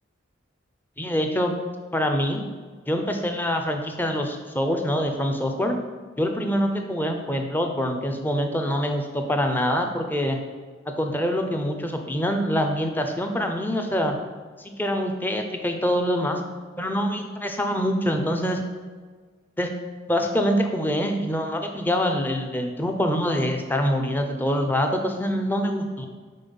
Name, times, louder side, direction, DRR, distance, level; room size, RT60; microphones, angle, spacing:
voice 1, 1.0-1.6 1.9-2.4 2.9-5.8 6.2-10.4 11.0-14.2 14.6-16.4 16.8-18.6 19.6-19.7 20.1-26.1, equal, 10° left, 4 dB, 0.5 m, -25 dB
5.4 x 4.2 x 5.4 m, 1.5 s
head